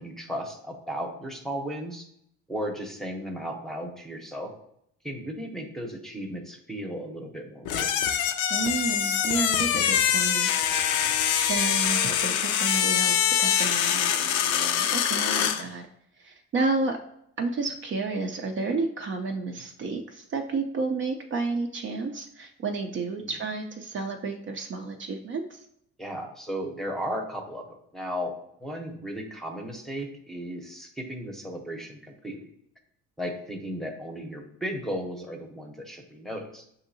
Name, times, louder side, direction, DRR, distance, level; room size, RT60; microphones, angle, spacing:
voice 1, 0.0-2.1 2.5-4.5 5.0-7.9 11.0-11.1 15.6-15.7 23.2-23.3 26.0-28.3 28.6-32.5 33.2-36.6, equal, ahead, 3 dB, 0.7 m, -35 dB
sound 1, 7.7-15.6, left 9 dB, 85° left, 0.5 m, -24 dB
voice 2, 8.5-10.6 11.3-15.9 16.2-17.0 17.4-25.7, right 3 dB, 40° right, 4 dB, 0.5 m, -31 dB
6.3 x 2.7 x 2.7 m, 0.73 s
cardioid pair, 90°, 29 cm